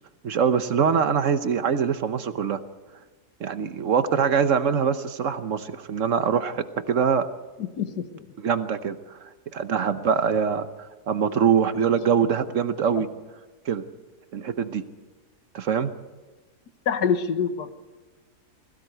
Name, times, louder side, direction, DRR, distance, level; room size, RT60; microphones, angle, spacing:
voice 1, 0.2-2.6 3.4-7.2 8.4-10.7 11.1-13.1 13.7-13.8 14.3-14.8 15.5-15.9, right 7 dB, 55° right, 11 dB, 1.2 m, -23 dB
voice 2, 7.6-8.3 16.9-17.7, left 7 dB, 90° left, 10 dB, 1.7 m, -26 dB
21.0 x 16.0 x 7.9 m, 1.3 s
omnidirectional pair, 1.7 m